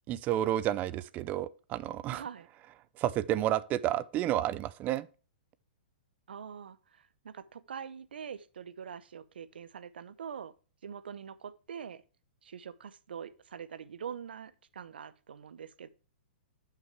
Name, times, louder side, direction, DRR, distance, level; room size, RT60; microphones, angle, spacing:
voice 1, 0.1-2.2 3.0-5.1, right 12 dB, 30° right, 0.4 m, -31 dB
voice 2, 2.1-2.5 6.3-10.5 10.8-12.0 12.4-15.9, right 7 dB, 80° right, 0.7 m, -44 dB
11.0 x 5.8 x 3.2 m
hypercardioid pair, 125°, 5 cm